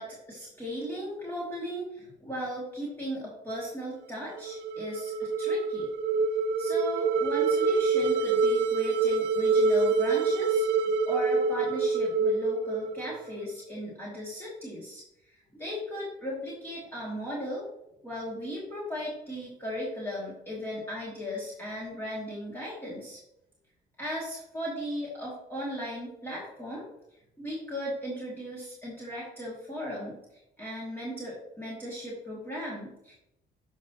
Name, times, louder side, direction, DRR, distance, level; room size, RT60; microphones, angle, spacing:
voice 1, 0.0-5.9 6.6-15.0 15.6-17.7 18.0-23.2 24.0-26.9 27.4-30.2 30.6-33.1, equal, 10° left, -7 dB, 2.5 m, -37 dB
sound 1, 4.2-13.4, right 4 dB, 80° right, 0.7 m, -26 dB
9.8 x 5.5 x 3.0 m, 0.83 s
cardioid pair, 110°, 17 cm